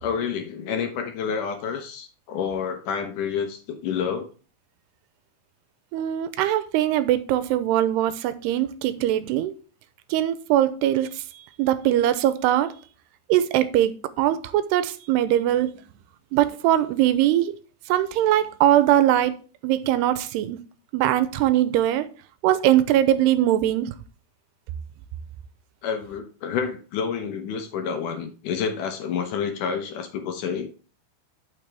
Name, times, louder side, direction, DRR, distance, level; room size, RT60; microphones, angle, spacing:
voice 1, 0.0-4.3 25.8-30.7, left 6 dB, 70° left, 2.0 m, -29 dB
voice 2, 5.9-9.5 10.1-11.2 11.6-12.7 13.3-15.7 16.3-17.6 17.9-19.4 19.6-20.6 20.9-22.1 22.4-23.9, right 12 dB, 85° right, 2.7 m, -21 dB
12.5 x 5.9 x 3.4 m
omnidirectional pair, 4.7 m